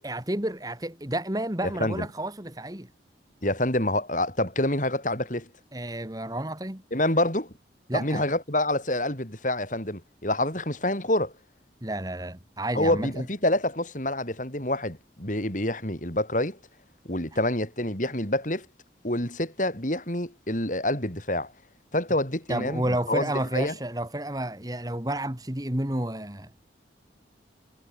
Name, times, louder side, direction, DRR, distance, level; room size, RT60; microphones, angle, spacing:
voice 1, 0.0-2.9 5.7-6.8 7.9-8.2 11.8-13.3 22.5-26.5, right 1 dB, 20° right, 1.9 m, -31 dB
voice 2, 1.6-2.1 3.4-5.5 6.9-7.5 7.9-11.3 12.7-16.6 17.0-18.7 19.0-21.5 21.9-23.7, left 1 dB, 45° left, 5.7 m, -27 dB
head